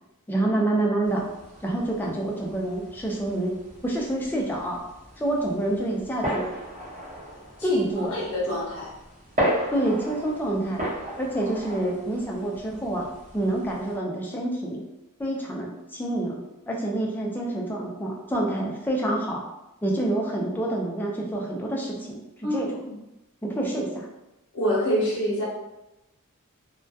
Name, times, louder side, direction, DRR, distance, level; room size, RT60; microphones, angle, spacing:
voice 1, 0.3-1.2 1.6-3.5 3.8-4.8 5.2-6.5 7.6-8.2 9.7-10.8 11.2-13.1 13.3-14.8 15.2-16.4 16.7-19.4 19.8-22.7 23.4-24.1, right 1 dB, 10° left, -2 dB, 0.3 m, -27 dB
sound 1, 1.0-14.0, equal, 35° right, 0.8 m, -35 dB
voice 2, 7.6-8.9 22.4-22.9 24.5-25.5, equal, 80° left, -7 dB, 0.6 m, -27 dB
2.2 x 2.1 x 2.6 m, 0.94 s
head